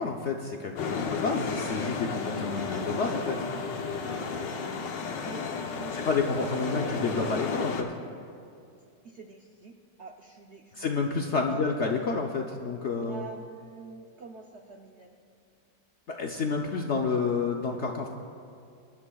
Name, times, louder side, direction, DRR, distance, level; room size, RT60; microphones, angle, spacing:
voice 1, 0.0-3.4 5.9-7.9 10.7-13.3 16.1-18.1, left 4 dB, 60° left, 2 dB, 0.7 m, -29 dB
sound 1, 0.8-7.8, left 5 dB, 85° left, 1.6 m, -33 dB
voice 2, 5.7-6.0 6.5-7.0 9.0-10.9 11.5-11.6 11.9-12.0 12.9-15.2, right 3 dB, 60° right, 2 dB, 0.7 m, -46 dB
23.5 x 11.0 x 2.3 m, 2.5 s
omnidirectional pair, 1.9 m